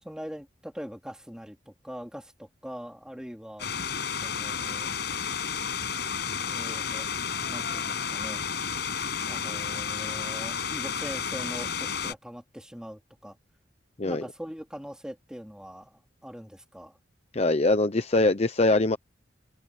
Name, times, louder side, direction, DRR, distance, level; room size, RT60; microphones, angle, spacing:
voice 1, 0.0-3.7 4.2-4.9 6.3-7.1 7.4-8.5 9.3-13.4 14.0-17.0, equal, 5° right, 3.8 m, -42 dB
sound 1, 3.6-12.1, left 6 dB, 60° left, 6.4 m, -32 dB
voice 2, 17.3-19.0, left 2 dB, 35° left, 0.9 m, -23 dB
open air
head